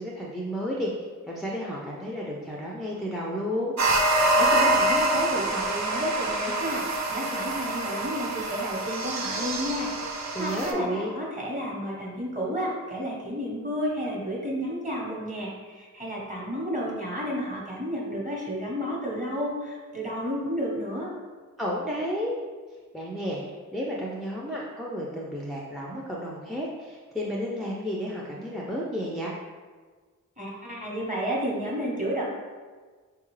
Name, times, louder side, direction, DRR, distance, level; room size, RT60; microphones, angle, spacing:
voice 1, 0.0-3.8 10.3-11.1 21.6-22.3 22.9-23.4 23.7-29.3, equal, ahead, -3 dB, 0.4 m, -32 dB
sound 1, 3.8-10.7, right 2 dB, 55° right, 0.5 m, -26 dB
voice 2, 4.3-6.8 7.1-21.1 30.4-32.2, equal, 25° right, -4 dB, 1.1 m, -31 dB
3.8 x 2.3 x 3.1 m, 1.4 s
cardioid pair, 45°, 33 cm